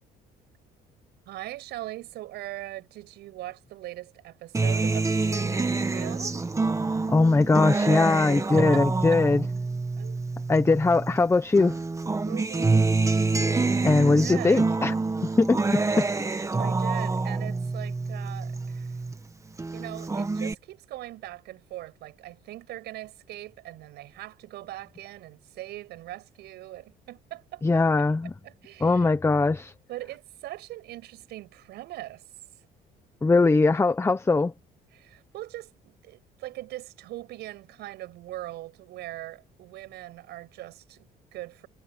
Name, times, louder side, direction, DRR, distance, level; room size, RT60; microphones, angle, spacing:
voice 1, 1.3-6.4 8.3-8.8 9.1-9.2 10.0-10.2 12.2-12.9 13.9-14.7 16.6-19.0 19.7-27.8 28.4-29.1 29.9-32.2 34.9-41.7, right 16 dB, 80° right, 7.4 m, -41 dB
Acoustic guitar, 4.5-11.2 11.6-19.2 19.6-20.5, right 3 dB, 20° right, 1.9 m, -27 dB
voice 2, 7.1-9.4 10.5-11.8 13.8-14.9 15.4-16.1 27.6-28.3 28.8-29.7 33.2-34.5, left 3 dB, 15° left, 1.0 m, -21 dB
cardioid pair, 110°, 17 cm